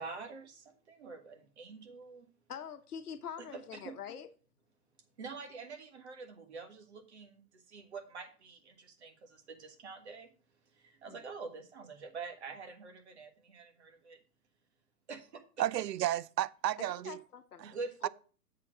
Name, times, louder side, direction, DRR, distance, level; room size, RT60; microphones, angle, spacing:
voice 1, 0.0-2.3 3.4-3.9 5.2-10.3 10.7-14.2 15.1-15.8 17.6-18.1, right 4 dB, 45° right, 1.5 m, -46 dB
voice 2, 2.5-4.3 11.1-11.3 16.8-17.7, left 8 dB, 65° left, 1.1 m, -45 dB
voice 3, 15.6-17.2 17.6-17.7 18.0-18.1, right 13 dB, 85° right, 0.6 m, -32 dB
7.4 x 4.3 x 6.2 m
hypercardioid pair, 175°, 48 cm